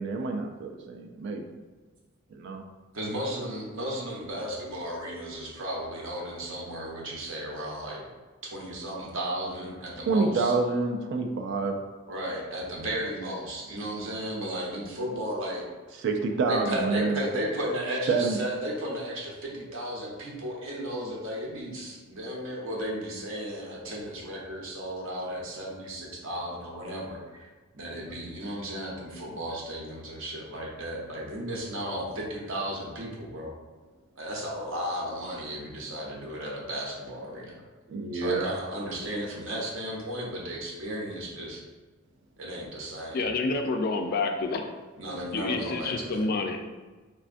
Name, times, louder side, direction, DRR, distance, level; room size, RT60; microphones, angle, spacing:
voice 1, 0.0-1.6 2.3-2.6 10.1-11.8 16.0-17.2 18.1-18.4 37.9-38.5 43.5-43.6, right 4 dB, 60° right, 4 dB, 0.3 m, -27 dB
voice 2, 2.9-8.0 8.4-10.5 12.1-15.6 16.5-27.5 27.7-33.5 34.2-37.6 38.1-41.6 42.4-43.3 45.0-46.3, equal, 80° right, -3 dB, 0.8 m, -34 dB
voice 3, 43.1-44.7 45.3-46.6, left 3 dB, 50° left, 5 dB, 0.3 m, -28 dB
3.4 x 2.2 x 2.5 m, 1.3 s
head